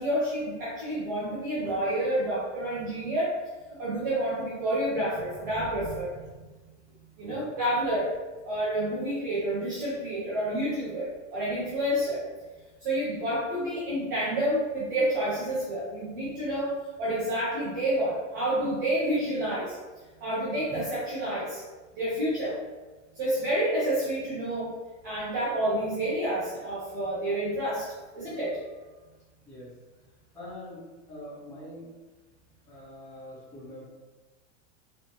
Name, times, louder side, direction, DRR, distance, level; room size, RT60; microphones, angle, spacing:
voice 1, 0.0-3.4 3.7-6.1 7.2-8.1 8.4-12.2 12.8-16.7 17.0-19.7 20.2-21.6 22.0-22.6 23.1-24.7 25.0-28.6, right 1 dB, 20° right, -10 dB, 0.3 m, -29 dB
voice 2, 7.2-7.5 29.5-29.7 30.3-30.8 31.1-31.9 32.7-33.8, left 1 dB, 10° left, -12 dB, 1.1 m, -43 dB
3.0 x 3.0 x 2.9 m, 1.3 s
supercardioid pair, 175°, 37 cm